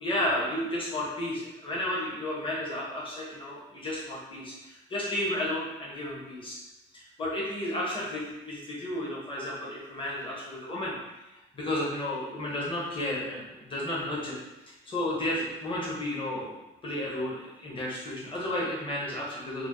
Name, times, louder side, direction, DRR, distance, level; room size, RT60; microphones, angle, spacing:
voice 1, 0.0-6.6 6.9-10.9 11.5-14.4 14.7-16.5 16.8-19.7, left 1 dB, 25° left, -5 dB, 1.1 m, -32 dB
4.5 x 2.2 x 3.1 m, 1.0 s
cardioid pair, 90°, 20 cm